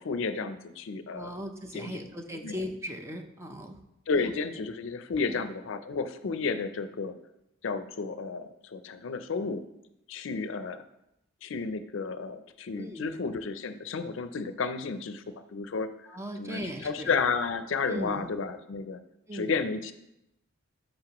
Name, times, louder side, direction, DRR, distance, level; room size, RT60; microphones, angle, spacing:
voice 1, 0.0-1.3 1.7-2.0 2.4-2.5 4.1-7.2 7.6-9.6 10.1-10.8 11.4-15.2 15.5-16.1 16.4-19.0 19.3-19.9, left 4 dB, 65° left, 11 dB, 0.5 m, -32 dB
voice 2, 1.1-3.8 4.2-4.3 5.3-5.4 12.7-13.1 16.1-17.1 17.8-18.3 19.3-19.5, equal, 15° right, 4 dB, 0.6 m, -38 dB
11.5 x 5.3 x 3.0 m, 0.85 s
head